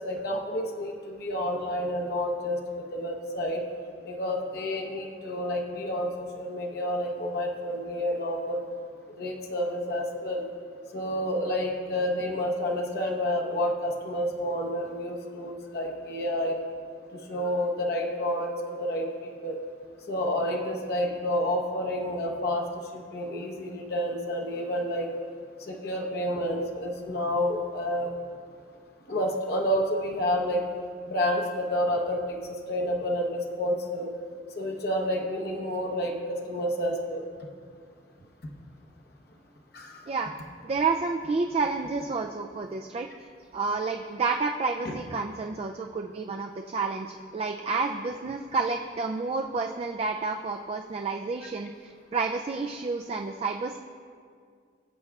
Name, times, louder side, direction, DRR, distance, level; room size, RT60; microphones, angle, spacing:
voice 1, 0.0-3.6 4.0-8.6 9.2-10.4 10.9-16.6 17.1-19.6 20.1-22.7 22.9-25.1 25.7-28.1 29.1-30.6 31.1-32.4 32.7-34.1 34.5-37.3 39.7-40.1, equal, 60° left, 1 dB, 1.0 m, -29 dB
voice 2, 40.6-43.1 43.5-53.8, right 4 dB, 35° right, 3 dB, 0.3 m, -30 dB
18.0 x 7.7 x 2.4 m, 2.1 s
head